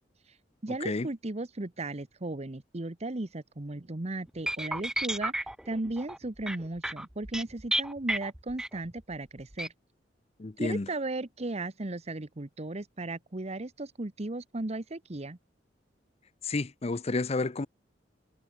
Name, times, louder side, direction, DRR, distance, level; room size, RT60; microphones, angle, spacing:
voice 1, 0.6-9.7 10.6-15.4, right 2 dB, 35° right, 1.1 m, -36 dB
sound 1, 4.5-9.0 9.5-9.7, right 1 dB, 5° right, 0.3 m, -32 dB
voice 2, 10.4-10.9 16.4-17.7, left 3 dB, 35° left, 0.7 m, -30 dB
head